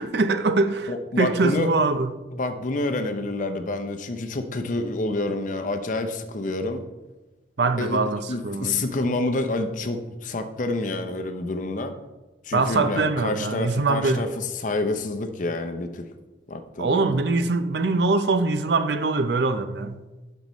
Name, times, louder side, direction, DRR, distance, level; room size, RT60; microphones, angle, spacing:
voice 1, 0.0-2.1 7.6-8.8 12.5-14.3 16.8-20.0, right 3 dB, 65° right, 0.5 m, -23 dB
voice 2, 0.9-1.7 2.4-6.8 7.8-8.0 8.3-11.9 12.4-16.1 16.5-17.2, left 2 dB, 45° left, 0.6 m, -28 dB
11.5 x 5.4 x 3.1 m
head